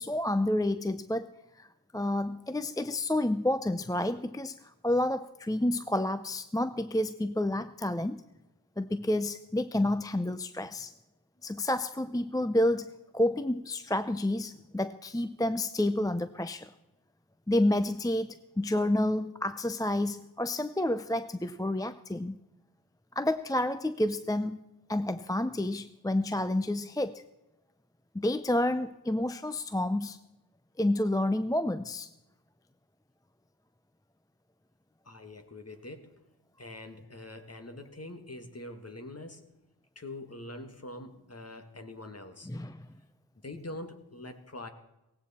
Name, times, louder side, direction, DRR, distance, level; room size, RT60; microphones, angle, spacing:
voice 1, 0.0-1.7 1.9-8.2 8.8-10.9 11.4-16.7 17.5-22.4 23.2-24.6 24.9-27.2 28.1-30.2 30.8-32.1 42.5-42.9, left 1 dB, 10° left, 12 dB, 0.6 m, -29 dB
voice 2, 35.1-36.2 36.6-39.5 40.0-42.5 43.4-44.7, left 1 dB, 40° left, 7 dB, 1.8 m, -44 dB
18.0 x 16.0 x 4.3 m, 0.94 s
wide cardioid pair, 45°, 38 cm